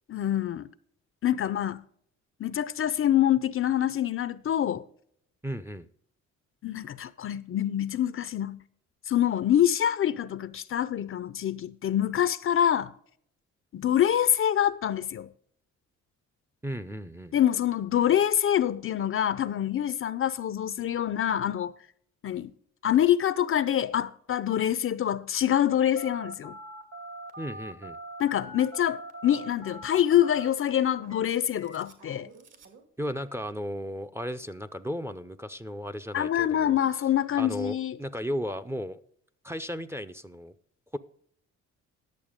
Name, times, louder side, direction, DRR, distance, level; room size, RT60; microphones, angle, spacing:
voice 1, 0.1-0.7 1.2-1.8 2.4-4.8 6.6-8.6 9.1-12.9 13.7-15.3 17.3-21.7 22.2-22.5 22.8-26.6 28.2-32.3 36.1-38.0, left 10 dB, 45° left, 0.5 m, -25 dB
voice 2, 5.4-5.9 16.6-17.3 27.4-28.0 33.0-37.1 37.4-39.0 39.4-40.5 40.9-41.0, equal, 10° right, 0.5 m, -35 dB
Telephone, 26.0-32.8, right 1 dB, 60° right, 2.2 m, -43 dB
10.5 x 6.8 x 5.0 m
cardioid pair, 90°, 30 cm